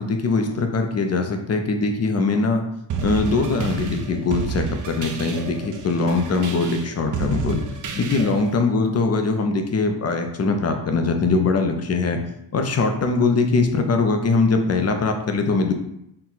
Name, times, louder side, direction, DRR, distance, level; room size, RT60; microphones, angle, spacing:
voice 1, 0.0-2.6 3.0-7.6 8.0-12.2 12.5-15.7, left 3 dB, 35° left, 5 dB, 0.4 m, -21 dB
sound 1, 2.9-8.5, right 5 dB, 40° right, 0.4 m, -30 dB
4.4 x 2.1 x 3.8 m, 0.78 s
wide cardioid pair, 145°, 48 cm